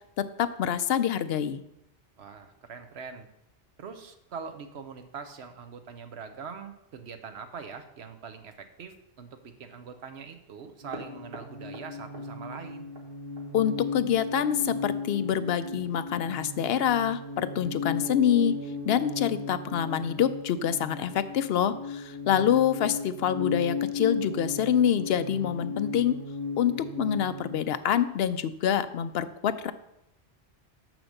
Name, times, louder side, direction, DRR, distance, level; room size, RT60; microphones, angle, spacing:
voice 1, 0.2-1.6 13.5-18.6 18.9-26.2 26.6-29.7, left 9 dB, 65° left, 12 dB, 0.7 m, -26 dB
voice 2, 2.2-3.3 3.8-12.9 22.4-22.6, right 6 dB, 70° right, 8 dB, 1.1 m, -43 dB
sound 1, 10.8-27.5, left 4 dB, 55° right, 1.5 m, -36 dB
6.8 x 6.2 x 6.5 m, 0.83 s
omnidirectional pair, 1.2 m